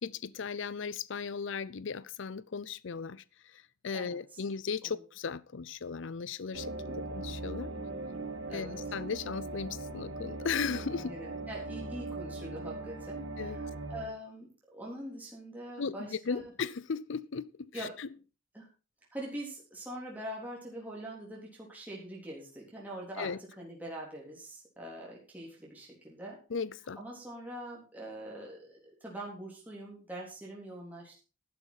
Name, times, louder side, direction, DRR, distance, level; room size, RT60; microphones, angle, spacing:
voice 1, 0.0-3.2 3.8-7.7 8.5-11.1 13.4-13.6 15.8-18.1 23.2-23.4 26.5-27.0, left 5 dB, 65° left, 0.5 m, -36 dB
voice 2, 3.9-4.4 4.8-4.9 7.8-8.8 11.0-16.5 17.7-17.9 18.5-18.7 19.1-26.4 27.0-31.2, right 1 dB, 10° right, 3.5 m, -43 dB
sound 1, 6.5-14.1, right 2 dB, 75° right, 2.5 m, -40 dB
12.0 x 11.0 x 4.1 m
head